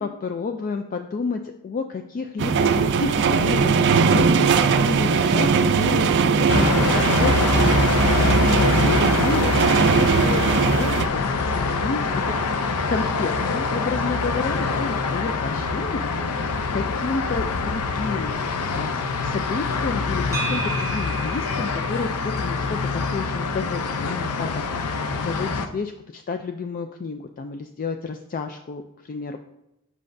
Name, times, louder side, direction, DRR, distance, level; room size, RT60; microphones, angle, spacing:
voice 1, 0.0-7.6 8.5-12.5 12.9-16.4 16.7-18.3 18.7-24.9 25.2-29.4, left 4 dB, 40° left, 6 dB, 0.3 m, -31 dB
sound 1, 2.4-11.1, right 5 dB, 50° right, 0.4 m, -19 dB
sound 2, 6.5-25.7, left 4 dB, 90° left, 0.6 m, -24 dB
sound 3, 20.3-24.4, right 4 dB, 15° right, 0.7 m, -36 dB
7.7 x 6.2 x 2.6 m, 0.88 s
head